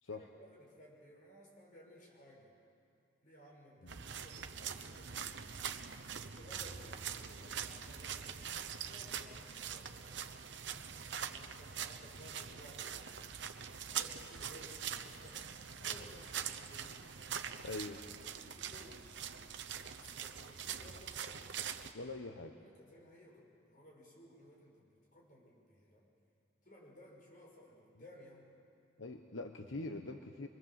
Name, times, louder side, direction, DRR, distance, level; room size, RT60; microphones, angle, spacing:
voice 1, 0.1-2.5 3.2-5.1 6.2-10.2 11.2-13.1 13.7-17.0 18.4-19.1 19.9-21.5 22.6-26.1 26.6-28.5, left 1 dB, 45° left, -2 dB, 6.1 m, -58 dB
sound 1, 3.9-21.9, right 8 dB, 65° right, 0.9 m, -43 dB
voice 2, 17.6-18.0 21.9-22.6 29.0-30.5, left 2 dB, 80° left, 5 dB, 1.1 m, -43 dB
25.5 x 23.0 x 7.5 m, 2.4 s
head